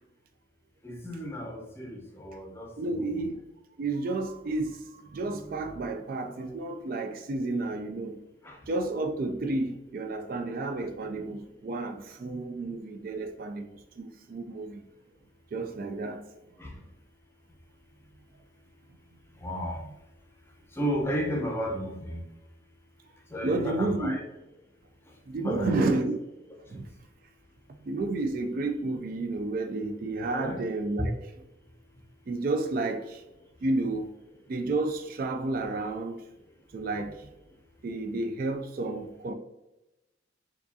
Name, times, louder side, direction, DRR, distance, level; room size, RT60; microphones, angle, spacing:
voice 1, 0.8-3.2 8.4-8.6 16.6-16.8 19.4-19.8 20.8-22.2 23.3-24.2 25.4-25.9 26.7-26.8 30.3-30.6, equal, 15° left, 0.6 m, -33 dB
voice 2, 2.8-3.4 3.8-8.2 8.7-14.9 15.5-16.3 23.4-24.2 25.3-26.2 26.7-26.8 27.8-31.2 32.3-33.2 33.6-34.1 34.5-36.2 36.7-37.3 37.8-39.3, right 2 dB, 50° right, 0.3 m, -31 dB
4.7 x 2.3 x 2.7 m
head